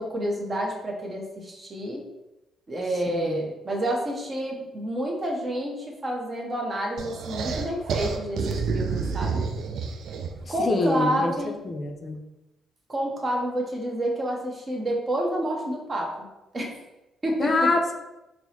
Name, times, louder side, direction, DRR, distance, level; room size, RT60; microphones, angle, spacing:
voice 1, 0.0-2.1 2.7-9.4 10.5-11.5 12.9-16.3 16.5-16.7 17.2-17.7, right 1 dB, 30° right, 0 dB, 0.7 m, -29 dB
voice 2, 3.1-3.4 10.7-11.3 11.6-12.2 17.4-17.9, left 2 dB, 40° left, 3 dB, 0.4 m, -24 dB
sound 1, 7.0-10.5, right 5 dB, 70° right, 0.3 m, -29 dB
4.4 x 2.1 x 2.7 m, 0.98 s
cardioid pair, 90°, 0 cm